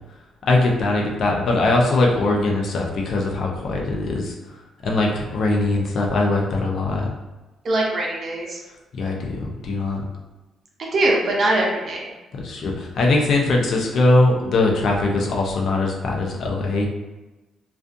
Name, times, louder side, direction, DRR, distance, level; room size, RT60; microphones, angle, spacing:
voice 1, 0.5-4.3 4.8-7.1 9.0-10.0 12.4-16.9, left 2 dB, 60° left, 0 dB, 0.6 m, -21 dB
voice 2, 7.6-8.6 10.8-12.1, right 1 dB, 50° right, -2 dB, 0.6 m, -22 dB
2.4 x 2.3 x 2.6 m, 1.1 s
cardioid pair, 90°, 0 cm